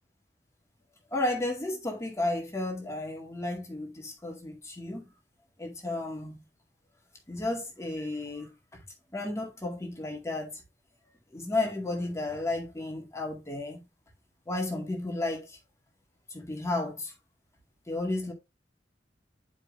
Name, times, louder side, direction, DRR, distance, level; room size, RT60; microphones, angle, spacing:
voice 1, 1.1-5.1 5.6-6.4 7.3-8.5 9.1-10.6 11.3-13.8 14.5-15.6 16.3-17.1 17.9-18.3, left 2 dB, 15° left, 2.0 m, -33 dB
10.5 x 5.3 x 2.6 m
head